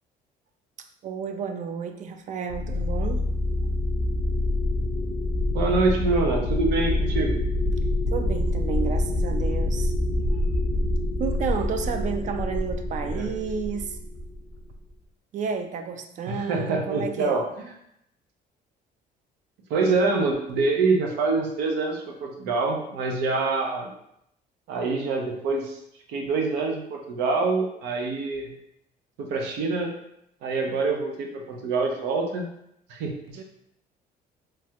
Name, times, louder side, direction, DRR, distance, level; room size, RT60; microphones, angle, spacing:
voice 1, 1.0-3.3 8.1-9.9 11.2-14.0 15.3-17.4 33.4-33.5, right 6 dB, 45° right, 7 dB, 0.4 m, -31 dB
sound 1, 2.5-14.8, left 1 dB, 20° left, 0.5 m, -26 dB
voice 2, 5.5-7.4 13.0-13.3 16.3-17.4 19.7-23.9 24.7-25.8 26.1-28.5 29.2-29.9 30.4-32.5 32.9-33.4, right 3 dB, 90° right, 1 dB, 0.6 m, -25 dB
3.1 x 2.3 x 2.8 m, 0.76 s
cardioid pair, 110°, 17 cm